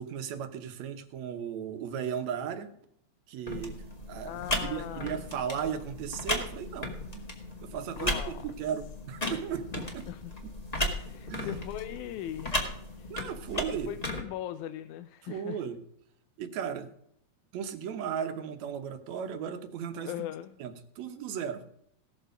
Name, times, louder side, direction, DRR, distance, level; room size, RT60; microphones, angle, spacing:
voice 1, 0.0-2.7 3.3-4.3 4.6-7.3 7.6-10.1 11.3-11.5 13.1-14.0 15.2-15.8 16.4-16.9 17.5-20.1 20.6-21.7, right 8 dB, 75° right, 8 dB, 2.2 m, -36 dB
sound 1, 3.5-14.2, left 1 dB, 15° left, 1.4 m, -35 dB
voice 2, 4.2-5.2 7.9-8.5 10.1-10.3 11.0-13.2 13.9-15.6 20.1-20.6, left 12 dB, 85° left, 11 dB, 2.0 m, -40 dB
17.5 x 6.7 x 5.1 m, 0.72 s
omnidirectional pair, 3.3 m